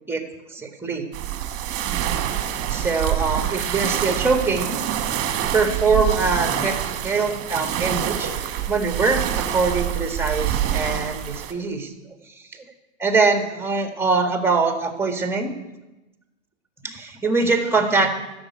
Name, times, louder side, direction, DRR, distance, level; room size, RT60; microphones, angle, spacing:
voice 1, 0.5-1.0 2.7-4.8 5.5-11.9 13.0-15.5 16.8-18.1, right 4 dB, 5° right, 5 dB, 1.7 m, -23 dB
sound 1, 1.1-11.5, right 10 dB, 35° right, 1.5 m, -26 dB
12.5 x 7.2 x 9.5 m, 1.0 s
hypercardioid pair, 120°, 38 cm